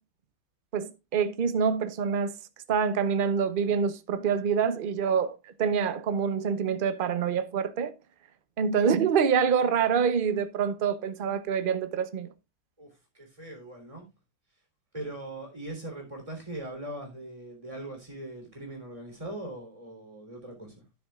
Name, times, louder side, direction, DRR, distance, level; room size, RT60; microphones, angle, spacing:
voice 1, 0.7-2.3 2.7-7.9 8.6-12.3, right 6 dB, 50° right, 0.6 m, -26 dB
voice 2, 13.1-14.1 14.9-20.8, right 1 dB, 15° right, 3.6 m, -40 dB
11.5 x 9.7 x 2.4 m
omnidirectional pair, 2.1 m